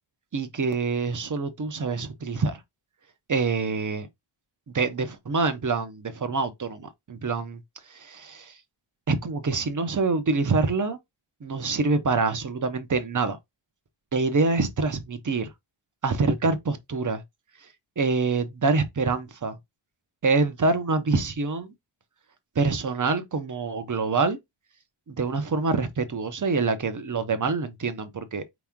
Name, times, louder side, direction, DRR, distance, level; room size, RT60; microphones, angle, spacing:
voice 1, 0.3-2.6 3.3-4.1 4.7-7.6 7.9-8.6 9.1-11.0 11.4-13.4 14.1-15.5 16.0-17.2 18.0-19.6 20.2-21.7 22.5-24.4 25.1-28.5, right 4 dB, 40° right, 0.8 m, -26 dB
4.7 x 3.0 x 3.5 m
wide cardioid pair, 155°, 48 cm